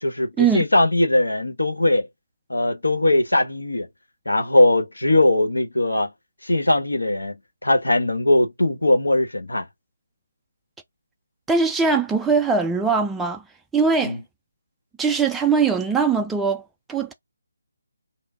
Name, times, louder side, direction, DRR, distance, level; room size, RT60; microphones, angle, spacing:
voice 1, 0.0-2.1 2.5-3.9 4.2-6.1 6.4-7.3 7.6-9.7 14.0-14.2, left 1 dB, 75° left, 1.2 m, -20 dB
voice 2, 11.5-13.4 13.7-14.2 15.0-16.6 16.9-17.1, right 5 dB, 5° right, 0.3 m, -21 dB
3.9 x 2.1 x 3.7 m
figure-of-eight pair, 150°, 0 cm